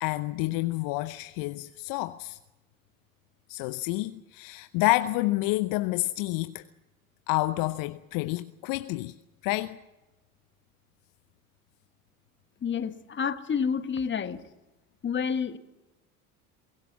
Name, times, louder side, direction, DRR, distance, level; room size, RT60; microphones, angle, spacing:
voice 1, 0.0-2.4 3.5-6.6 7.3-9.2 9.4-9.8, left 19 dB, 50° left, 0.8 m, -29 dB
voice 2, 12.6-14.4 15.0-15.6, left 6 dB, 25° left, 1.4 m, -29 dB
23.0 x 18.0 x 7.4 m
hypercardioid pair, 75°, 43 cm